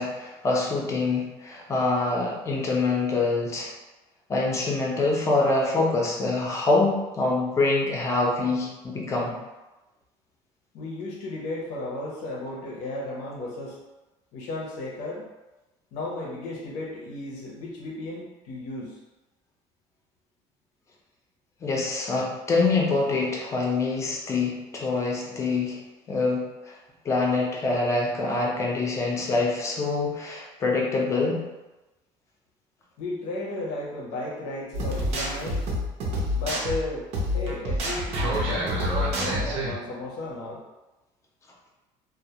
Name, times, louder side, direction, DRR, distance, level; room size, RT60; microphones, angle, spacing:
voice 1, 0.0-3.7 4.3-9.3 21.6-25.8 26.1-26.8 27.0-31.4, left 3 dB, 25° left, -2 dB, 0.5 m, -25 dB
voice 2, 10.7-13.8 14.3-15.3 15.9-19.0 33.0-35.6 36.3-37.1 37.3-40.6, left 2 dB, 85° left, -4 dB, 0.6 m, -34 dB
sound 1, 34.7-39.7, equal, 65° right, 0.6 m, -27 dB
2.2 x 2.0 x 2.8 m, 1.1 s
cardioid pair, 140°, 12 cm